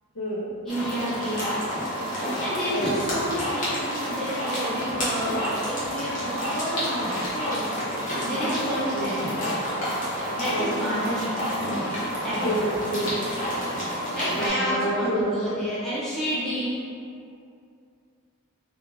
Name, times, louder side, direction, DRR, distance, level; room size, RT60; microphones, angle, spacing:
voice 1, 0.6-1.6 2.4-9.5 10.3-11.9 12.2-12.6 14.1-16.7, equal, ahead, -13 dB, 0.8 m, -30 dB
sound 1, 0.7-14.5, equal, 35° left, 0.8 m, -29 dB
voice 2, 12.4-13.3 14.3-15.6, equal, 65° left, -7 dB, 0.7 m, -28 dB
2.5 x 2.4 x 3.1 m, 2.4 s
head